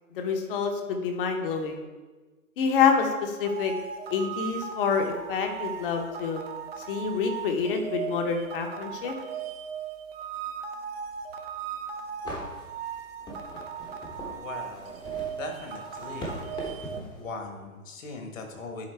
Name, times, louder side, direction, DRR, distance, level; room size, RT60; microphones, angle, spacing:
voice 1, 0.1-1.8 2.6-3.7 4.1-6.4 6.9-9.1, left 6 dB, 40° left, 4 dB, 0.9 m, -27 dB
sound 1, 3.4-17.0, right 7 dB, 45° right, 0.7 m, -37 dB
sound 2, 11.7-11.8 12.2-17.2, left 1 dB, 10° left, 0.9 m, -41 dB
voice 2, 14.3-15.0 15.4-16.4 16.8-18.9, left 4 dB, 60° left, 4 dB, 1.5 m, -40 dB
10.5 x 3.9 x 3.3 m, 1.3 s
hypercardioid pair, 130°, 43 cm